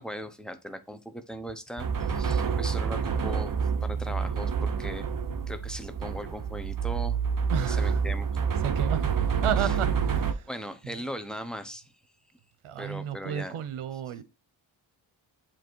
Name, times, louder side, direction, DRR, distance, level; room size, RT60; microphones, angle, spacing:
voice 1, 0.0-3.5 3.8-5.0 5.5-7.2 7.7-8.3 9.6-9.8 10.5-11.9 12.8-13.6 14.1-14.2, equal, ahead, 0.9 m, -38 dB
sound 1, 1.8-10.3, right 6 dB, 40° right, 0.9 m, -28 dB
voice 2, 7.5-8.0 8.6-9.0 9.4-10.5 12.6-14.2, right 9 dB, 85° right, 0.9 m, -32 dB
7.8 x 3.0 x 4.6 m
cardioid pair, 65°, 49 cm